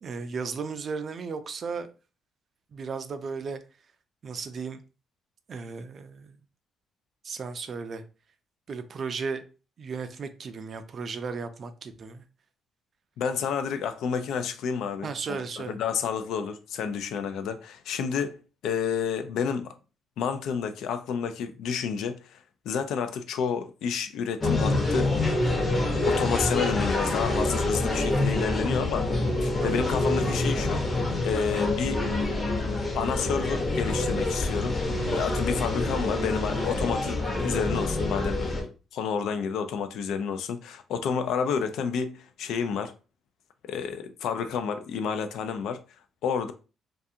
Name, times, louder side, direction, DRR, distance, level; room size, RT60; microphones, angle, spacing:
voice 1, 0.0-1.9 2.7-3.6 4.2-4.8 5.5-6.4 7.2-8.0 8.7-9.4 9.8-12.2 15.0-15.8 29.6-29.9, right 5 dB, 50° right, 0.4 m, -35 dB
voice 2, 13.2-15.1 15.6-18.4 18.6-19.7 20.2-25.2 25.8-30.8 31.2-32.0 32.9-38.5 38.9-42.9 43.6-45.8 46.2-46.5, left 6 dB, 80° left, 0.3 m, -30 dB
sound 1, 24.4-38.6, left 2 dB, 35° left, 0.8 m, -26 dB
2.4 x 2.3 x 2.7 m
cardioid pair, 90°, 0 cm